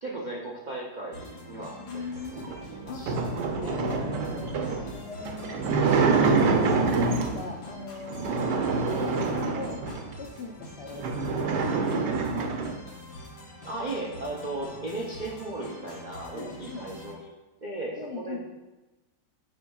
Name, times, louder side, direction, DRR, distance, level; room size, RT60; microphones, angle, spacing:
voice 1, 0.0-1.8 2.3-2.4 2.7-3.1 3.4-3.8 13.6-17.3 17.6-18.4, right 2 dB, 65° right, -4 dB, 0.4 m, -36 dB
sound 1, 1.1-17.1, left 2 dB, 70° left, 1.8 m, -45 dB
voice 2, 1.5-2.5 2.9-3.1 3.6-5.9 6.6-12.5 16.3-16.8 18.0-18.4, left 4 dB, 85° left, 0 dB, 0.5 m, -39 dB
sound 2, 2.3-7.5 8.1-10.1 10.6-10.7 10.9-12.8, right 4 dB, 80° right, 1.3 m, -26 dB
7.8 x 5.5 x 2.3 m, 1.1 s
omnidirectional pair, 1.8 m